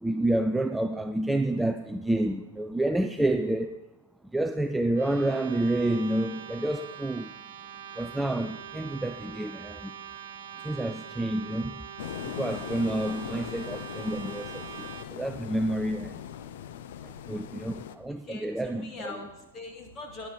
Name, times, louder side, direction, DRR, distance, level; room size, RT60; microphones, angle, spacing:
voice 1, 0.0-3.8 4.3-7.3 8.0-9.9 10.6-11.8 12.2-14.9 15.1-16.2 17.3-19.2, right 1 dB, 5° right, 0.3 m, -29 dB
sound 1, 4.9-15.1, right 9 dB, 65° right, 1.1 m, -43 dB
sound 2, 12.0-18.0, left 10 dB, 60° left, 0.6 m, -40 dB
voice 2, 18.2-20.3, left 3 dB, 25° left, 2.2 m, -42 dB
12.5 x 9.7 x 4.1 m
hypercardioid pair, 130°, 0 cm